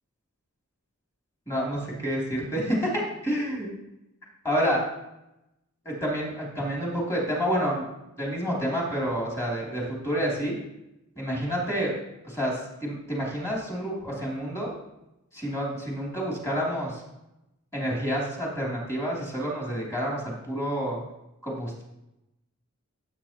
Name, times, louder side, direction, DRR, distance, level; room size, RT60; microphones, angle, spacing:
voice 1, 1.5-3.7 4.4-4.8 5.8-7.8 8.2-10.6 11.2-12.0 12.2-14.7 15.3-17.0 17.7-21.0 21.4-21.8, equal, 15° left, -4 dB, 3.1 m, -29 dB
16.0 x 8.1 x 3.0 m, 0.91 s
head